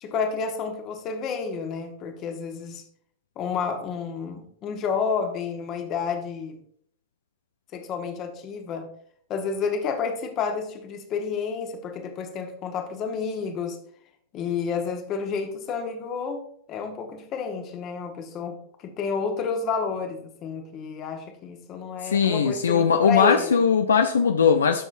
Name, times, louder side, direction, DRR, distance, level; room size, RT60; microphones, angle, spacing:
voice 1, 0.0-2.8 3.4-6.6 7.7-8.9 9.3-13.8 14.3-16.4 16.7-18.6 18.8-23.6, left 5 dB, 40° left, 5 dB, 1.4 m, -30 dB
voice 2, 22.0-24.8, left 6 dB, 80° left, 7 dB, 0.5 m, -20 dB
12.0 x 6.1 x 2.7 m, 0.66 s
hypercardioid pair, 95°, 0 cm